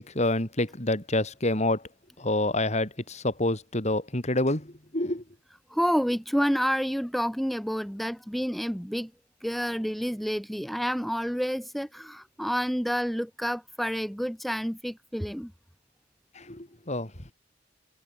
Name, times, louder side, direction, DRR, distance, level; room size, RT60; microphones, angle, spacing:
voice 1, 0.0-1.8 2.2-5.2 16.4-17.1, left 1 dB, 40° left, 4.3 m, -27 dB
voice 2, 5.7-9.1 9.4-15.5, equal, ahead, 2.6 m, -29 dB
head